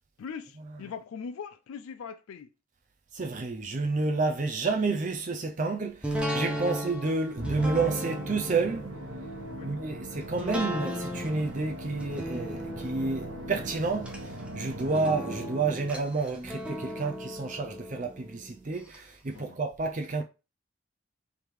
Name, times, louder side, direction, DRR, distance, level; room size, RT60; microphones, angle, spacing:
voice 1, 0.2-2.5 6.6-6.7 9.6-9.7 19.3-19.6, left 6 dB, 85° left, 0.4 m, -41 dB
voice 2, 3.1-8.9 9.6-20.2, right 3 dB, 35° right, 0.5 m, -30 dB
sound 1, 6.0-19.0 19.4-19.5, equal, 5° right, 0.7 m, -37 dB
Musical instrument, 7.4-15.9, right 1 dB, 75° right, 1.2 m, -40 dB
3.5 x 3.2 x 4.6 m
head